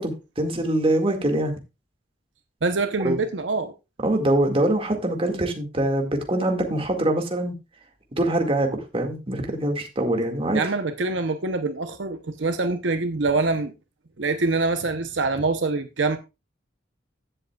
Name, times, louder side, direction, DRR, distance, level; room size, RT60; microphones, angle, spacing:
voice 1, 0.0-1.6 3.0-3.2 4.0-7.5 8.2-10.6, right 1 dB, 30° right, 2.0 m, -24 dB
voice 2, 2.6-3.7 10.5-13.7 14.2-16.2, right 3 dB, 70° right, 0.8 m, -25 dB
15.5 x 7.7 x 2.3 m
head